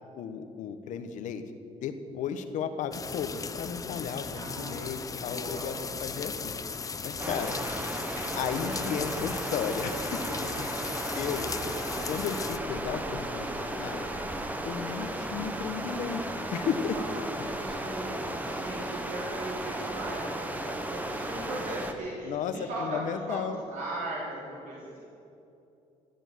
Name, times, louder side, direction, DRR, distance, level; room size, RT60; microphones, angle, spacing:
voice 1, 0.1-1.4 1.8-6.5 7.0-7.6 8.4-10.7 11.1-11.5 12.1-14.1 14.6-16.2 16.5-17.0 17.4-17.5 22.2-23.6, left 7 dB, 75° left, 9 dB, 1.3 m, -34 dB
sound 1, 2.9-12.6, left 5 dB, 25° left, 0.8 m, -37 dB
voice 2, 4.3-6.1 16.9-23.4 23.7-25.0, right 1 dB, 80° right, -6 dB, 3.7 m, -39 dB
sound 2, 7.2-21.9, right 1 dB, 10° right, 1.4 m, -35 dB
15.5 x 10.0 x 8.4 m, 2.7 s
cardioid pair, 120°, 13 cm